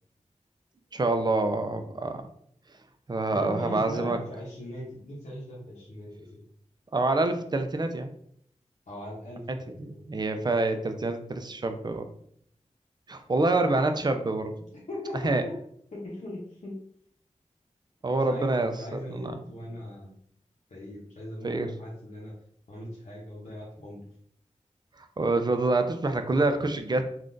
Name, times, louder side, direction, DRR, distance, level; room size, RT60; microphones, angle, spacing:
voice 1, 0.9-2.2 3.1-4.2 6.9-8.1 9.5-12.1 13.1-14.5 15.2-15.4 18.0-19.3 20.0-20.1 21.4-21.7 25.0-27.0, right 2 dB, 35° right, 7 dB, 0.4 m, -27 dB
voice 2, 3.3-6.4 8.9-10.0 14.6-15.5 15.9-16.7 18.0-20.1 20.7-22.3 22.7-24.0, left 1 dB, 70° left, -5 dB, 0.8 m, -39 dB
3.5 x 2.4 x 2.6 m, 0.66 s
wide cardioid pair, 65°, 13 cm